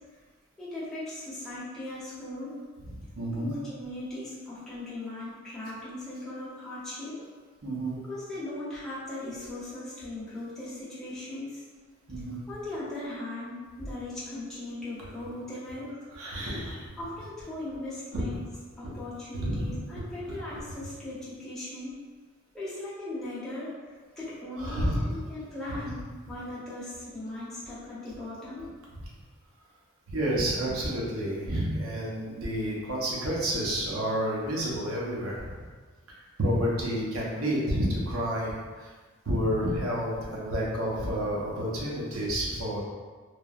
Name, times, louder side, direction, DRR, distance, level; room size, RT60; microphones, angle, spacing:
voice 1, 0.6-2.6 3.4-7.2 8.0-11.6 12.5-15.9 17.0-18.4 18.8-21.9 22.5-23.7 24.2-28.7, left 2 dB, 5° left, -11 dB, 0.7 m, -38 dB
voice 2, 2.8-3.5 7.6-7.9 12.1-12.4 16.1-16.8 18.1-18.2 19.3-19.8 20.2-20.4 24.6-25.1 28.9-29.0 30.1-35.5 36.4-38.9 39.3-42.8, equal, 80° right, -5 dB, 0.7 m, -30 dB
3.2 x 2.1 x 2.4 m, 1.4 s
head